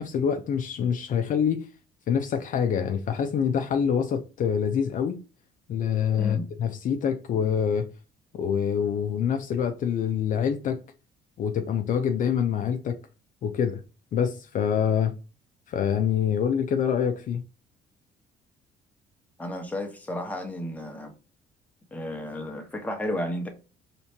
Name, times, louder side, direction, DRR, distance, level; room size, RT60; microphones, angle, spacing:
voice 1, 0.0-1.7 2.1-5.2 5.7-7.9 8.3-10.8 11.4-13.0 13.4-13.8 14.1-15.1 15.7-17.4, left 7 dB, 50° left, 0.5 m, -26 dB
voice 2, 19.4-21.1 21.9-23.5, left 1 dB, 10° left, 1.2 m, -32 dB
4.3 x 3.3 x 2.8 m
cardioid pair, 110°, 17 cm